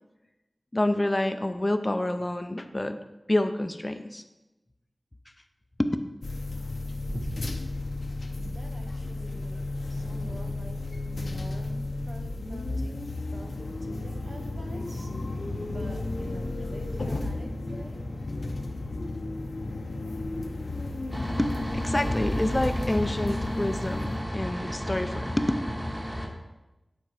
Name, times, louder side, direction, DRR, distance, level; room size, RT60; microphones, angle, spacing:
voice 1, 0.7-3.0 3.3-4.2 5.8-6.0 21.4-25.5, left 1 dB, 25° left, 8 dB, 0.6 m, -28 dB
sound 1, 6.2-24.2, left 2 dB, 75° left, 0.8 m, -33 dB
sound 2, 7.1-7.7 8.4-8.9 10.2-11.0 12.2-12.7 14.1-14.5 16.9-17.0, right 1 dB, 35° right, 0.9 m, -41 dB
voice 2, 8.4-10.8 11.0-13.0 13.3-15.1 15.7-18.0, right 1 dB, 80° right, 2 dB, 1.2 m, -46 dB
sound 3, 21.1-26.3, equal, 5° right, 1.3 m, -33 dB
10.0 x 4.4 x 4.9 m, 1.0 s
wide cardioid pair, 60°, 0 cm